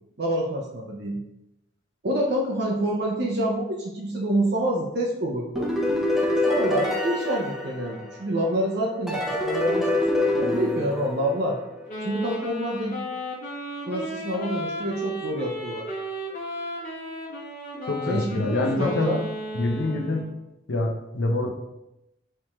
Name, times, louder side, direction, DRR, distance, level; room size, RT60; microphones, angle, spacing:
voice 1, 0.2-1.2 2.0-5.7 6.5-11.6 12.0-13.0 13.9-15.9 18.1-19.2, right 1 dB, 55° right, -1 dB, 0.6 m, -27 dB
sound 1, 5.6-8.4 9.1-11.9, left 1 dB, ahead, 0.5 m, -26 dB
Wind instrument woodwind instrument, 11.9-20.4, equal, 45° left, 1.1 m, -34 dB
voice 2, 17.9-19.1 19.5-20.3 20.7-21.5, left 2 dB, 80° left, 2 dB, 0.7 m, -25 dB
4.5 x 3.5 x 3.0 m, 0.89 s
head